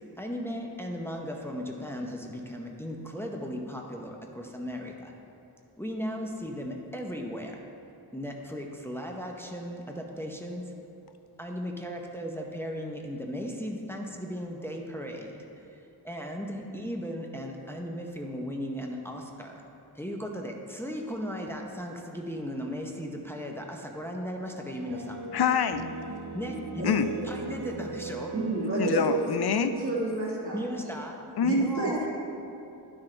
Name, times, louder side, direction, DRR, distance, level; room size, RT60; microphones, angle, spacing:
voice 1, 0.2-5.1 5.8-7.6 8.1-10.7 11.4-15.4 15.7-19.6 19.9-25.2 26.3-26.8 27.2-28.3 30.5-31.1 31.4-32.1, equal, 5° left, 1 dB, 0.8 m, -36 dB
sound 1, 24.9-29.9, right 4 dB, 75° right, 0.6 m, -39 dB
voice 2, 25.3-25.9 26.8-27.1 28.8-29.8 31.4-31.8, left 7 dB, 70° left, 10 dB, 0.5 m, -26 dB
voice 3, 28.3-29.2 29.7-30.6 31.4-32.1, right 3 dB, 35° right, -6 dB, 1.7 m, -29 dB
11.5 x 6.2 x 3.3 m, 2.8 s
wide cardioid pair, 55°, 40 cm